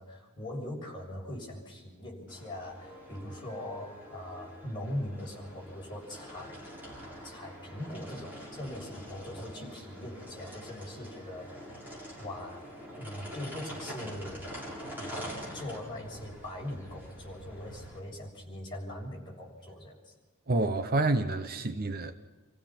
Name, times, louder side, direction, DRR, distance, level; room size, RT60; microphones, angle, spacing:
voice 1, 0.0-6.6 7.2-11.6 12.2-12.7 13.0-14.6 15.0-20.1, left 1 dB, 20° left, 6.6 m, -41 dB
sound 1, 2.3-18.0, equal, 10° right, 7.5 m, -45 dB
voice 2, 20.5-22.2, right 2 dB, 45° right, 0.9 m, -28 dB
28.5 x 16.0 x 5.9 m
head